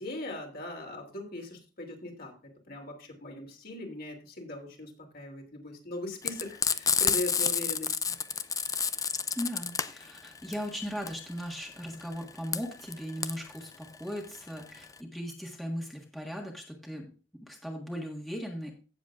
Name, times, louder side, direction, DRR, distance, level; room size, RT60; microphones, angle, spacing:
voice 1, 0.0-2.3 2.7-8.1, left 1 dB, 50° left, 2 dB, 2.9 m, -40 dB
Frying (food), 6.2-15.0, left 6 dB, 20° left, 0.4 m, -30 dB
voice 2, 9.3-17.1 17.5-18.7, equal, ahead, 0 dB, 1.5 m, -38 dB
16.5 x 7.3 x 2.5 m, 0.35 s
head